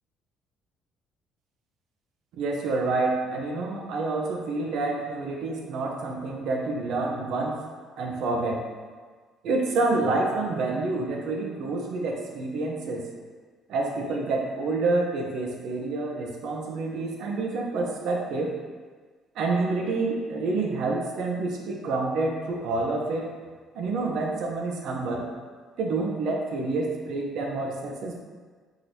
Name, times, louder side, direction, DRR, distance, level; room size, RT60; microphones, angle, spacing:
voice 1, 2.4-7.6 8.0-8.6 9.4-13.1 13.7-18.5 19.4-23.3 23.7-25.3 25.8-28.2, right 3 dB, 65° right, 1 dB, 0.6 m, -28 dB
4.8 x 3.1 x 2.7 m, 1.5 s
cardioid pair, 150°, 0 cm